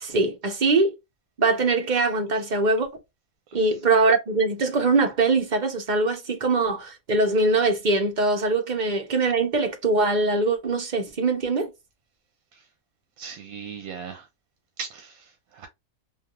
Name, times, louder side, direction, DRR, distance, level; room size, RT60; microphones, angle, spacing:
voice 1, 0.0-0.9 1.4-2.9 3.5-11.7, right 3 dB, 40° right, 0.7 m, -22 dB
voice 2, 13.2-14.3 14.8-15.7, right 6 dB, 80° right, 1.0 m, -38 dB
3.2 x 2.5 x 2.3 m
omnidirectional pair, 1.5 m